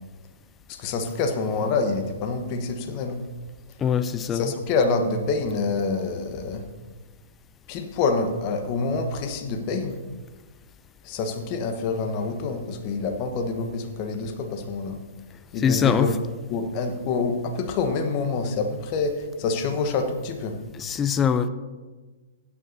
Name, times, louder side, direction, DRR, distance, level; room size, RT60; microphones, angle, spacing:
voice 1, 0.7-3.2 4.3-6.7 7.7-10.0 11.0-15.0 15.5-16.1 16.5-20.6, left 4 dB, 40° left, 6 dB, 1.2 m, -27 dB
voice 2, 3.8-4.5 15.6-16.1 20.8-21.5, left 7 dB, 20° left, 12 dB, 0.5 m, -22 dB
15.5 x 9.7 x 2.8 m, 1.3 s
figure-of-eight pair, 115°, 0 cm